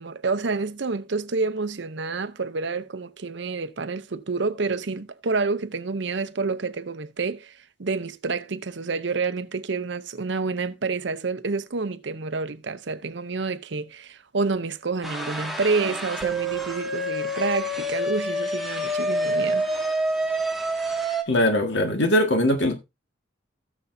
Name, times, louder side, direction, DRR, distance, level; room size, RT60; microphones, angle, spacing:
voice 1, 0.0-7.5 7.8-19.7, right 4 dB, 65° right, 0.7 m, -28 dB
sound 1, 15.0-21.2, right 1 dB, ahead, 1.3 m, -27 dB
voice 2, 21.3-22.8, left 1 dB, 65° left, 1.8 m, -21 dB
17.0 x 7.0 x 2.7 m
head